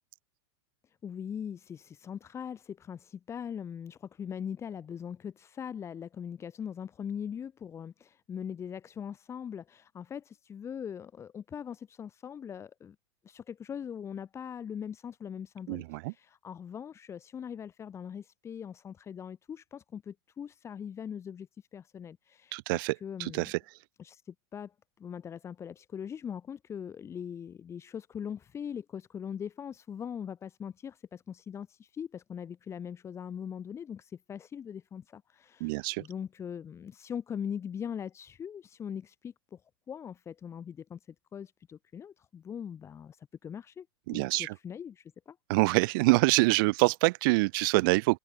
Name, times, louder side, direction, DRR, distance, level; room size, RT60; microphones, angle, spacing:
voice 1, 1.0-13.0 13.2-23.5 24.0-39.6 39.9-41.0 41.3-45.4, left 8 dB, 20° left, 6.9 m, -41 dB
voice 2, 15.7-16.1 22.5-23.6 35.6-36.0 44.1-44.6 45.5-48.2, right 25 dB, 50° right, 0.9 m, -26 dB
open air
supercardioid pair, 150°, 14 cm